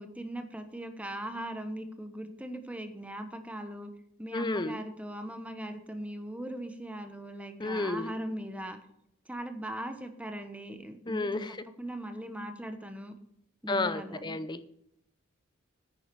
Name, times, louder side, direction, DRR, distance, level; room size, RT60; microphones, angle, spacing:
voice 1, 0.0-3.9 4.2-8.8 9.3-13.1 13.6-14.4, right 1 dB, 5° right, 7 dB, 1.1 m, -39 dB
voice 2, 4.3-4.8 7.6-8.1 11.1-11.5 13.7-14.7, left 2 dB, 25° left, 13 dB, 0.6 m, -31 dB
9.7 x 9.5 x 4.7 m, 0.77 s
head